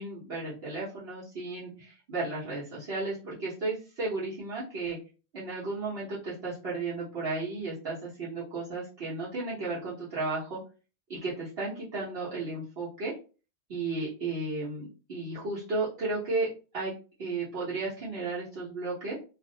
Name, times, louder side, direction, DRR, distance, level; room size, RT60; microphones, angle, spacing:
voice 1, 0.0-5.0 5.3-10.6 11.1-13.1 13.7-16.5 16.7-19.2, right 3 dB, 70° right, -8 dB, 1.0 m, -34 dB
2.4 x 2.0 x 2.6 m, 0.34 s
omnidirectional pair, 1.1 m